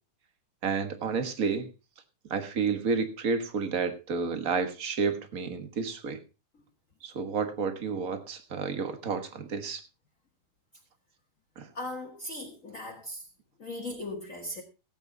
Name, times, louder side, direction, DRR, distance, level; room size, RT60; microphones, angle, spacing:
voice 1, 0.6-1.7 2.3-6.2 7.0-9.8 11.6-11.7, right 5 dB, 45° right, 1.1 m, -30 dB
voice 2, 11.7-13.2 13.6-14.6, left 1 dB, 35° left, 1.5 m, -38 dB
17.5 x 8.5 x 3.9 m
omnidirectional pair, 3.6 m